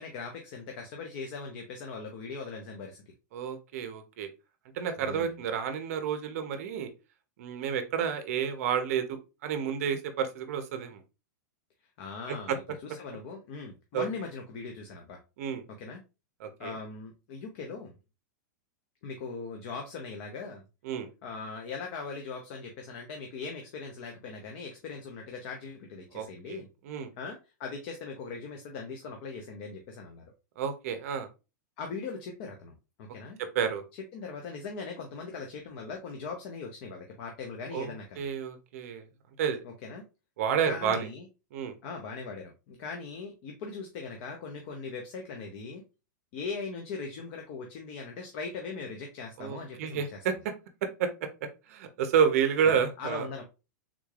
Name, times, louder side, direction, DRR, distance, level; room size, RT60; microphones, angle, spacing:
voice 1, 0.0-3.0 5.0-5.4 12.0-15.2 15.7-16.0 16.6-17.9 19.0-20.6 21.2-26.7 27.2-30.2 31.8-33.4 34.1-38.3 39.6-40.1 40.6-41.3 41.8-45.8 46.3-50.2 53.0-53.4, left 4 dB, 40° left, 3 dB, 0.6 m, -40 dB
voice 2, 3.3-4.3 4.7-6.9 7.4-11.0 12.5-12.6 13.9-14.1 15.4-15.6 16.4-16.7 20.8-21.1 26.1-26.6 26.9-27.1 30.6-31.3 33.5-33.8 37.7-39.1 39.4-39.6 40.4-41.1 41.5-41.7 49.4-50.3 51.0-51.3 51.7-53.3, right 7 dB, 50° right, 8 dB, 0.6 m, -30 dB
3.6 x 3.2 x 2.3 m, 0.29 s
supercardioid pair, 165°, 10 cm